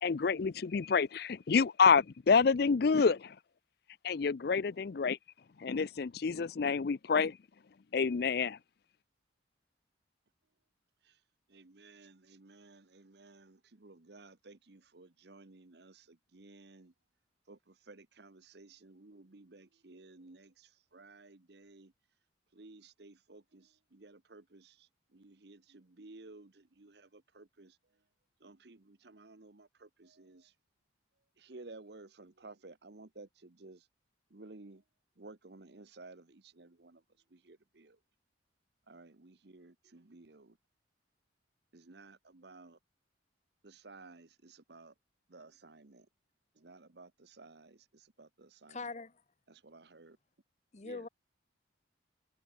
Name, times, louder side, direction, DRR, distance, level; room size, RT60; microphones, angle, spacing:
voice 1, 0.0-3.4 4.0-5.2 5.6-7.4 7.9-8.6, left 5 dB, 55° left, 0.4 m, -28 dB
voice 2, 11.5-16.9 17.5-21.9 22.5-27.8 28.4-30.5 31.4-33.9 34.3-34.8 35.2-37.0 37.3-38.0 38.9-40.6 41.7-42.8 43.6-44.9 45.3-46.1 46.5-48.8 49.5-50.2 50.8-51.1, right 3 dB, 55° right, 1.0 m, -55 dB
voice 3, 48.7-49.2 50.7-51.1, left 3 dB, 35° left, 0.9 m, -42 dB
open air
head